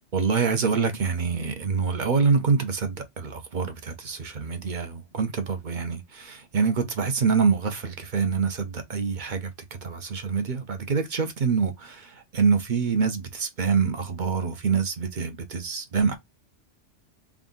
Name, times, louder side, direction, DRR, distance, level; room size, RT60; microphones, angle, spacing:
voice 1, 0.1-9.5 9.8-16.1, right 5 dB, 45° right, 0.8 m, -26 dB
3.6 x 2.4 x 3.8 m
omnidirectional pair, 1.2 m